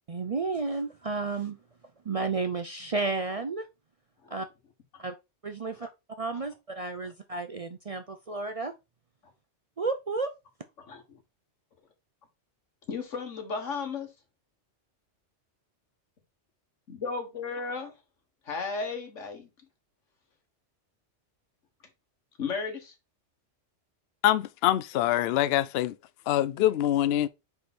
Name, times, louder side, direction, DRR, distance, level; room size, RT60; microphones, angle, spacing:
voice 1, 0.1-1.6 2.1-3.7 4.3-4.5 5.0-5.1 5.4-5.9 6.2-8.7 9.8-10.3, right 3 dB, 45° right, 0.5 m, -32 dB
voice 2, 10.8-11.2 12.9-14.1 16.9-17.9 18.5-19.5 22.4-22.9, left 4 dB, 90° left, 1.8 m, -35 dB
voice 3, 24.2-25.9 26.3-27.3, left 13 dB, 65° left, 0.7 m, -24 dB
4.9 x 4.8 x 4.2 m
omnidirectional pair, 1.2 m